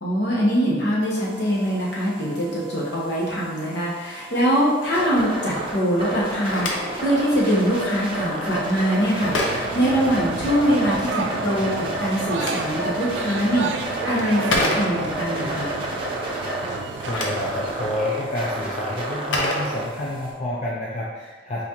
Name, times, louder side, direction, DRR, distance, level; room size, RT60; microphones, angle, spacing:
voice 1, 0.0-15.7, equal, 60° left, -5 dB, 1.1 m, -23 dB
sound 1, 1.1-20.3, right 1 dB, 25° right, 0.7 m, -31 dB
Telephone, 6.2-10.7 11.9-15.3 16.8-20.4, left 1 dB, 80° left, 0.7 m, -31 dB
sound 2, 9.2-18.0, right 4 dB, 65° right, 0.3 m, -32 dB
voice 2, 16.8-21.6, left 1 dB, 35° left, -6 dB, 0.5 m, -29 dB
4.1 x 3.6 x 3.0 m, 1.4 s
head